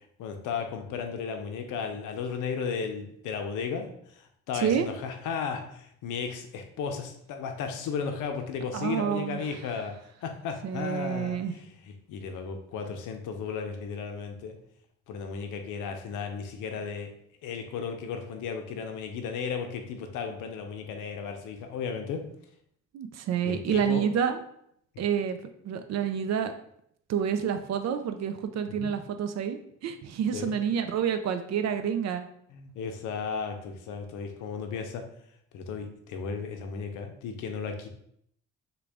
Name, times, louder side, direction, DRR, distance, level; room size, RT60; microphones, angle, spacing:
voice 1, 0.2-3.9 4.5-9.9 10.2-11.4 12.1-14.6 15.1-17.1 17.4-22.2 23.4-24.0 28.8-28.9 30.3-30.5 32.5-35.0 35.5-37.9, left 6 dB, 85° left, 5 dB, 0.6 m, -34 dB
voice 2, 4.5-4.9 8.7-9.4 10.6-11.5 22.9-24.4 25.0-25.4 25.6-26.5 27.1-32.3, right 8 dB, 60° right, 8 dB, 0.5 m, -28 dB
3.7 x 2.3 x 3.4 m, 0.70 s
cardioid pair, 90°, 30 cm